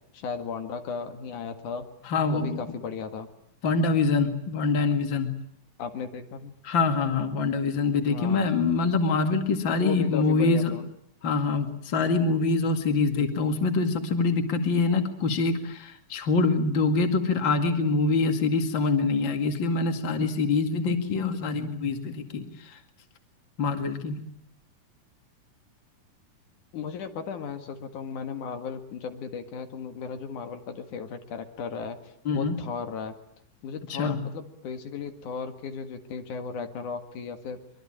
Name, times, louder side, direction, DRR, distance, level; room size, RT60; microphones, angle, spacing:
voice 1, 0.1-1.8 2.3-3.3 5.8-6.5 8.1-8.5 9.8-10.9 26.7-32.0 32.3-33.2 33.6-37.6, left 6 dB, 80° left, 6 dB, 3.3 m, -35 dB
voice 2, 2.1-2.6 3.6-5.3 6.6-10.8 11.2-22.8 23.6-24.2 32.3-32.6 33.9-34.2, left 4 dB, 40° left, 6 dB, 2.7 m, -25 dB
24.5 x 23.0 x 8.8 m, 0.71 s
omnidirectional pair, 3.5 m